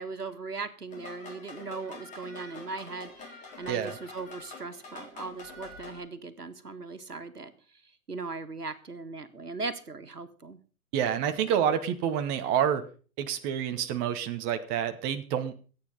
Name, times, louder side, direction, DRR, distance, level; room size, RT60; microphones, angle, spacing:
voice 1, 0.0-7.5 8.1-10.6, right 4 dB, 90° right, 9 dB, 1.7 m, -39 dB
sound 1, 0.9-6.0, left 3 dB, 15° left, 4.0 m, -46 dB
voice 2, 3.7-4.0 10.9-12.8 13.2-15.7, right 9 dB, 20° right, 8 dB, 1.0 m, -28 dB
25.5 x 8.8 x 3.9 m, 0.39 s
figure-of-eight pair, 125°, 45 cm